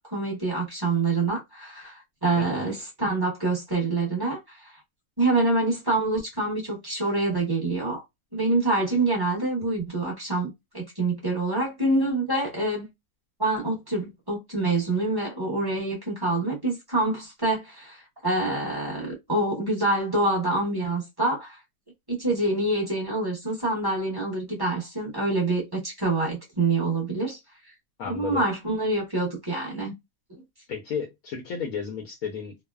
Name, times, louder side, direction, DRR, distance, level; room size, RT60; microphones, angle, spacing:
voice 1, 0.0-4.7 5.2-8.0 8.3-12.9 13.4-21.6 22.1-27.4 28.1-29.9, right 2 dB, 20° right, 0.9 m, -26 dB
voice 2, 2.4-2.7 28.0-28.4 30.7-32.5, left 6 dB, 75° left, 1.1 m, -33 dB
3.1 x 2.0 x 2.3 m
omnidirectional pair, 1.6 m